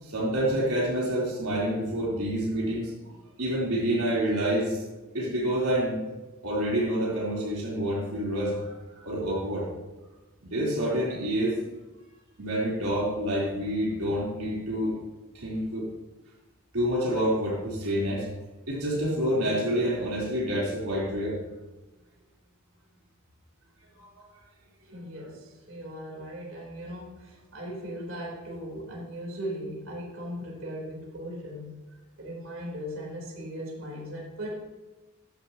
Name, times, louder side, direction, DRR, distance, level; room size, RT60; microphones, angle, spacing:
voice 1, 0.0-3.1 3.4-4.8 5.1-6.0 6.4-9.7 10.4-11.6 12.4-14.9 15.3-15.9 16.7-18.3 18.7-21.4 24.0-24.2, right 1 dB, 90° right, -5 dB, 3.8 m, -28 dB
voice 2, 24.9-31.7 32.2-34.6, equal, 60° right, -2 dB, 4.0 m, -38 dB
14.0 x 11.5 x 3.0 m, 1.2 s
head